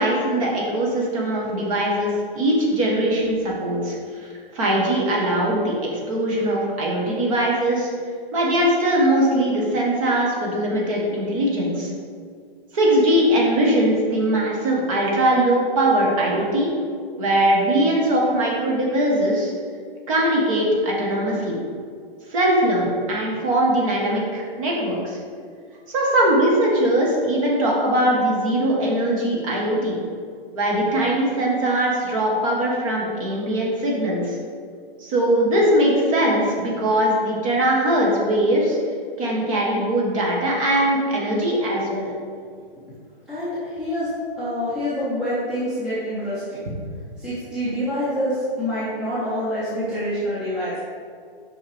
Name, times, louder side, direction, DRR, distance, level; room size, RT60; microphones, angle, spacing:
voice 1, 0.0-7.9 8.3-11.9 12.7-16.7 17.1-19.5 20.1-21.6 22.3-25.2 25.9-30.0 30.5-34.4 35.0-38.8 39.2-42.1, right 1 dB, 35° right, -2 dB, 1.2 m, -21 dB
voice 2, 43.3-44.1 44.4-46.6 47.2-50.8, equal, 5° right, -12 dB, 0.7 m, -26 dB
5.9 x 5.6 x 3.3 m, 2.2 s
hypercardioid pair, 165°, 31 cm